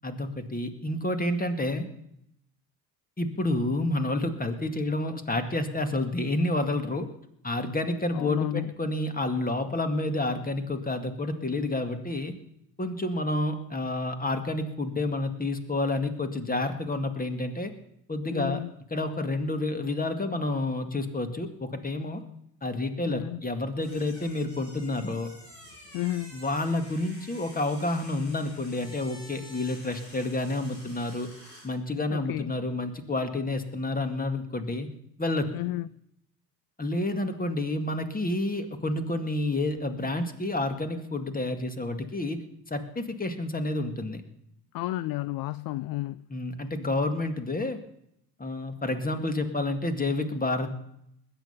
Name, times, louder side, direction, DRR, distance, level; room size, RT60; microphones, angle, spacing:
voice 1, 0.0-1.9 3.2-7.1 7.4-12.3 12.8-17.7 18.1-18.6 18.9-22.2 22.6-25.3 26.3-31.3 31.6-34.9 35.2-35.5 36.8-42.4 42.7-44.2 46.3-47.8 48.4-50.8, left 2 dB, 15° left, 2.2 m, -29 dB
voice 2, 8.1-8.7 18.3-18.7 23.0-23.4 25.9-26.4 32.1-32.5 35.5-36.0 44.7-46.3, left 16 dB, 45° left, 0.5 m, -32 dB
sound 1, 23.8-31.7, left 1 dB, 90° left, 6.7 m, -49 dB
20.5 x 9.2 x 5.7 m
hypercardioid pair, 65°, 48 cm